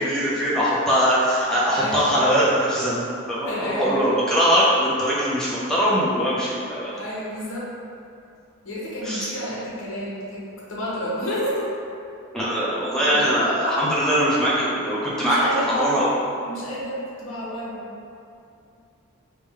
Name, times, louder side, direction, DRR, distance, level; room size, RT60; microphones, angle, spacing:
voice 1, 0.0-3.0 3.3-6.9 9.0-9.3 12.3-15.4 15.8-16.1, equal, 5° left, -8 dB, 0.5 m, -21 dB
voice 2, 1.7-2.3 3.2-4.1 6.9-7.7 8.6-11.7 13.0-13.3 15.1-16.0 16.4-17.9, equal, 70° left, -6 dB, 0.8 m, -30 dB
3.5 x 2.2 x 3.4 m, 2.6 s
head